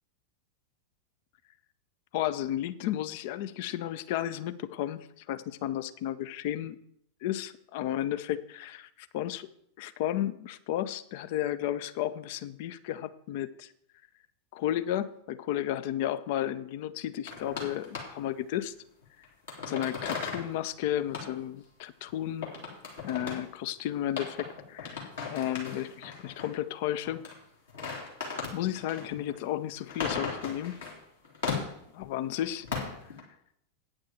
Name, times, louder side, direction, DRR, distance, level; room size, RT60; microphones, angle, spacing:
voice 1, 2.1-6.8 7.2-9.5 9.8-13.7 14.5-18.7 19.7-22.5 23.0-27.2 28.5-30.8 31.9-32.7, left 12 dB, 50° left, 13 dB, 0.6 m, -33 dB
sound 1, 17.3-18.4 19.0-20.5 20.8-20.9 21.1-21.3 22.1-22.2 22.4-23.5 24.2-26.6 27.0-27.4 27.7-31.0 31.2-32.0 32.4-33.2, left 5 dB, 65° left, 3.0 m, -37 dB
9.3 x 6.3 x 7.3 m, 0.70 s
figure-of-eight pair, 90°, 0 cm